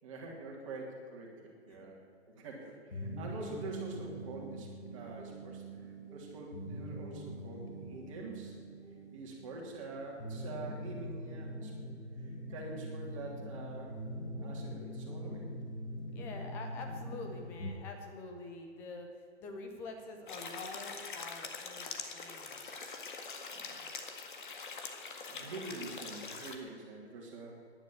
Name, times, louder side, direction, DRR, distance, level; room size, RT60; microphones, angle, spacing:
voice 1, 0.0-8.6 9.1-11.7 12.2-14.0 14.4-15.5 23.5-23.8 25.3-27.6, right 2 dB, 30° right, -1 dB, 3.1 m, -46 dB
sound 1, 2.9-17.7, equal, 85° left, 4.1 m, -43 dB
voice 2, 16.1-19.1 19.4-22.6, left 3 dB, 5° left, 3 dB, 0.7 m, -46 dB
sound 2, 20.3-26.6, left 4 dB, 45° left, 1.9 m, -44 dB
13.0 x 11.0 x 7.7 m, 2.3 s
hypercardioid pair, 155°, 35 cm